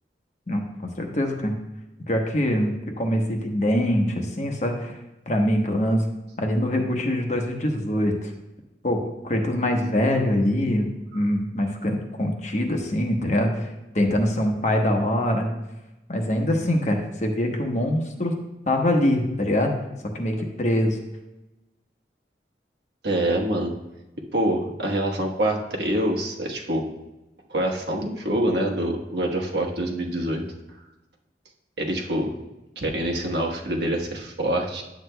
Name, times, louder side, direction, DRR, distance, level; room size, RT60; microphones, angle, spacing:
voice 1, 0.5-1.6 2.1-5.0 5.3-6.0 6.4-8.3 8.8-13.7 13.9-15.5 16.1-18.3 18.7-19.7 20.1-21.0, left 1 dB, 40° left, 3 dB, 1.0 m, -24 dB
voice 2, 23.0-23.7 24.3-26.8 27.5-30.4 31.8-32.3 32.8-34.8, right 1 dB, 75° right, 0 dB, 1.2 m, -25 dB
10.5 x 7.9 x 2.2 m, 0.99 s
head